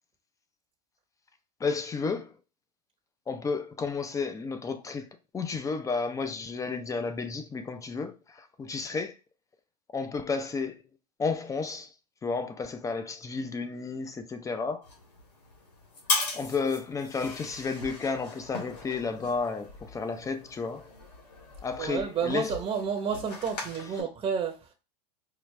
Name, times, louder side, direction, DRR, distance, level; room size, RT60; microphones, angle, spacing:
voice 1, 1.6-2.3 3.3-5.1 5.3-9.1 9.9-10.8 11.2-11.9 12.2-14.9 16.3-20.9 21.6-22.5, left 4 dB, 15° left, 0.6 m, -32 dB
sound 1, 14.8-24.0, left 3 dB, 85° left, 1.8 m, -38 dB
voice 2, 21.8-24.7, right 6 dB, 25° right, 0.8 m, -30 dB
4.9 x 2.4 x 3.2 m
hypercardioid pair, 110°, 21 cm